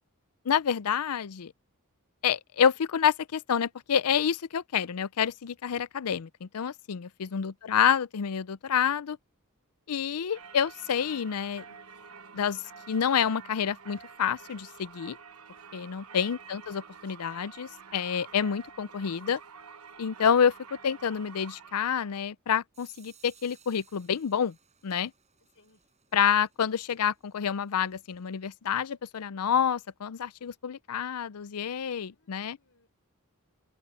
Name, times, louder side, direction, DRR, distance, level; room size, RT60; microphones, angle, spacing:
voice 1, 0.5-1.5 2.2-9.2 9.9-11.6 12.3-12.6 12.9-15.2 15.7-19.4 20.0-20.5 20.8-24.5 24.8-25.1 26.1-32.6, left 7 dB, 90° left, 0.5 m, -28 dB
Singing / Church bell, 10.3-22.2, right 6 dB, 80° right, 1.2 m, -49 dB
sound 1, 22.7-28.4, right 8 dB, 30° right, 7.2 m, -62 dB
voice 2, 25.5-25.9 32.1-32.9, left 2 dB, 65° left, 5.8 m, -67 dB
head